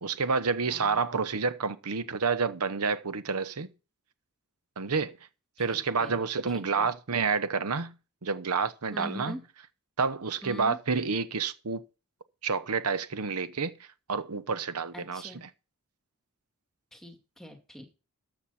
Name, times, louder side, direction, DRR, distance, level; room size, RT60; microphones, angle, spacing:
voice 1, 0.0-3.7 4.8-5.2 5.6-7.9 8.2-9.4 10.0-11.8 12.4-13.8 14.1-15.5, right 5 dB, 90° right, 0.9 m, -29 dB
voice 2, 0.6-1.0 5.7-6.2 6.5-6.9 8.9-9.4 10.4-10.8 14.9-15.5 16.9-17.9, equal, ahead, 2.3 m, -43 dB
13.0 x 8.0 x 4.3 m
head